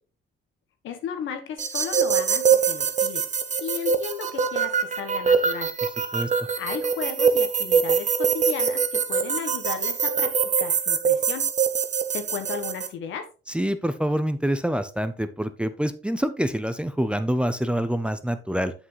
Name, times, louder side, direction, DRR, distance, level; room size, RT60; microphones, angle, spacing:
voice 1, 0.8-3.2 3.6-5.7 6.6-10.3 10.6-11.4 12.1-13.3, left 7 dB, 80° left, 7 dB, 1.2 m, -34 dB
sound 1, 1.6-12.9, right 6 dB, 35° right, 0.8 m, -24 dB
voice 2, 13.5-18.7, equal, 5° right, 11 dB, 0.6 m, -26 dB
7.4 x 6.0 x 3.2 m, 0.35 s
cardioid pair, 90°, 20 cm